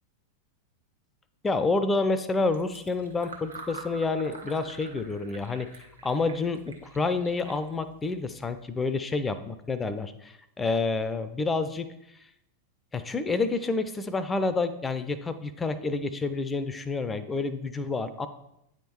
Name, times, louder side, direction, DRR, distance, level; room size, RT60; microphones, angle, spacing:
voice 1, 1.4-5.7 6.0-11.9 12.9-18.3, left 3 dB, 15° left, 12 dB, 0.4 m, -28 dB
Fill (with liquid), 2.4-8.6, right 3 dB, 80° right, 0.9 m, -47 dB
9.0 x 3.6 x 4.4 m, 0.81 s
figure-of-eight pair, 90°, 0 cm